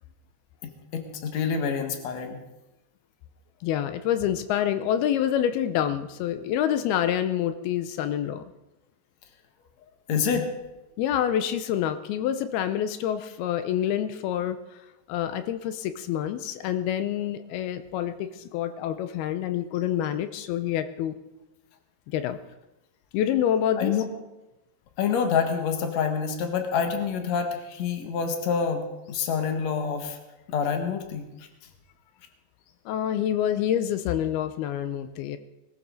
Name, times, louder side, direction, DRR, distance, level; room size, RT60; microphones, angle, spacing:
voice 1, 0.6-2.4 10.1-10.5 23.8-24.0 25.0-30.2 30.5-31.2, left 6 dB, 55° left, 5 dB, 2.2 m, -27 dB
voice 2, 3.6-8.4 11.0-14.6 15.1-21.2 22.1-22.4 23.1-23.9 32.9-35.4, left 10 dB, 80° left, 10 dB, 2.4 m, -27 dB
21.0 x 13.0 x 3.9 m, 0.97 s
omnidirectional pair, 5.0 m